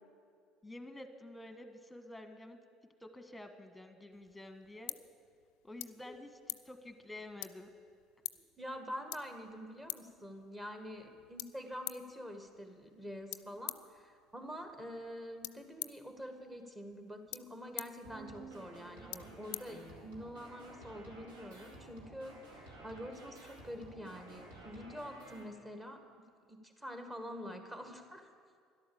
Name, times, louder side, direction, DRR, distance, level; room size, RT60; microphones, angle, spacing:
voice 1, 0.6-2.6 3.0-4.9 5.6-7.7, left 1 dB, 10° left, 8 dB, 1.4 m, -49 dB
sound 1, 4.1-20.4, left 19 dB, 70° left, 0.4 m, -49 dB
voice 2, 8.3-26.0 26.5-28.3, equal, 15° right, 5 dB, 1.8 m, -46 dB
sound 2, 18.0-25.4, right 2 dB, 70° right, 2.4 m, -53 dB
12.5 x 11.5 x 7.0 m, 2.1 s
hypercardioid pair, 60°, 0 cm